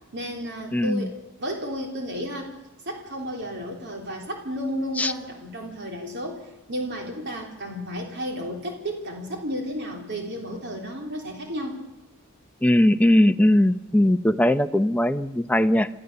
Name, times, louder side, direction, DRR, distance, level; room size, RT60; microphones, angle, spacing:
voice 1, 0.1-2.5 2.8-11.8, equal, 55° right, 2 dB, 3.4 m, -32 dB
voice 2, 0.7-1.1 5.0-5.1 12.6-15.9, left 1 dB, 5° left, 9 dB, 0.6 m, -20 dB
27.0 x 15.0 x 6.9 m, 1.0 s
head